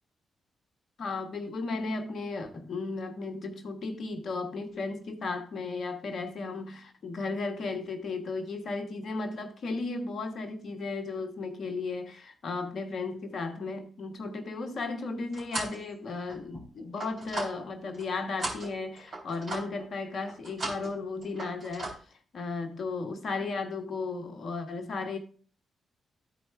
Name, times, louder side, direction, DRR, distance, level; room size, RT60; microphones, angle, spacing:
voice 1, 1.0-21.9 22.3-25.2, left 3 dB, 60° left, 1.4 m, -35 dB
sound 1, 14.8-15.8 16.3-18.1 18.4-19.9 20.3-21.0 21.2-21.9, right 2 dB, 55° right, 3.3 m, -38 dB
13.0 x 4.5 x 3.4 m
hypercardioid pair, 40°, 0 cm